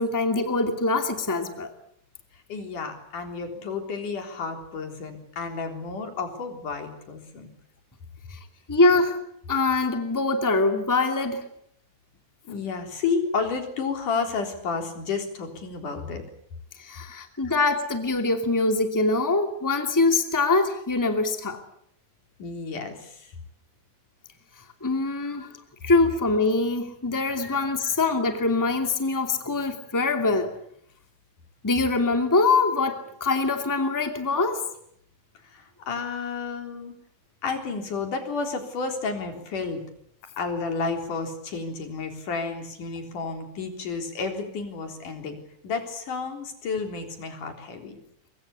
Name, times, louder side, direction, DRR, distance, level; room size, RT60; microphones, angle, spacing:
voice 1, 0.0-1.7 8.7-9.2 9.5-11.4 16.8-21.6 24.8-25.5 25.8-30.5 31.6-34.6, left 3 dB, 5° left, 6 dB, 2.3 m, -23 dB
voice 2, 2.5-7.5 12.5-16.2 17.2-17.6 22.4-23.3 25.3-25.5 27.4-27.9 35.5-37.0 37.4-39.9 40.4-45.4 45.6-48.0, left 4 dB, 90° left, 5 dB, 5.3 m, -31 dB
23.5 x 23.5 x 8.4 m, 0.69 s
omnidirectional pair, 3.5 m